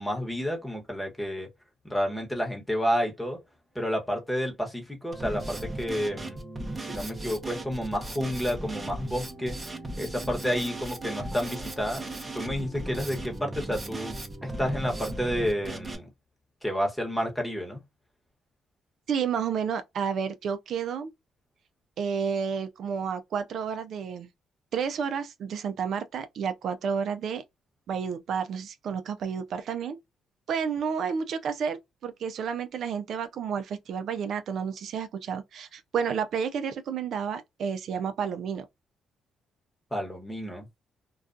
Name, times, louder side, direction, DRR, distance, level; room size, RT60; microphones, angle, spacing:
voice 1, 0.0-1.5 1.8-3.4 3.7-6.4 6.9-9.6 10.0-12.0 12.3-14.1 14.4-16.1 16.6-17.8 39.9-40.7, equal, 10° left, 1.1 m, -30 dB
Drum kit, 5.1-15.9, right 2 dB, 25° right, 0.7 m, -37 dB
voice 2, 19.1-21.1 22.0-24.3 24.7-27.4 27.9-30.0 30.5-38.6, right 7 dB, 65° right, 0.4 m, -31 dB
2.3 x 2.3 x 2.5 m
cardioid pair, 90°, 0 cm